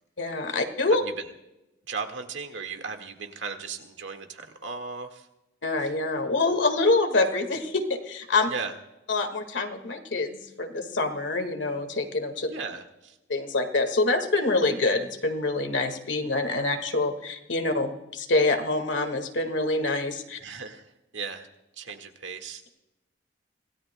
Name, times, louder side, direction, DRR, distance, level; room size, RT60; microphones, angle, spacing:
voice 1, 0.2-1.0 5.6-8.5 9.1-12.5 13.3-20.4, left 2 dB, 90° left, 7 dB, 1.8 m, -26 dB
voice 2, 0.9-1.3 1.9-5.3 5.8-5.9 8.5-8.7 12.5-13.2 20.4-21.5 21.8-22.7, right 5 dB, 90° right, 5 dB, 1.8 m, -36 dB
25.5 x 17.5 x 2.2 m, 0.94 s
head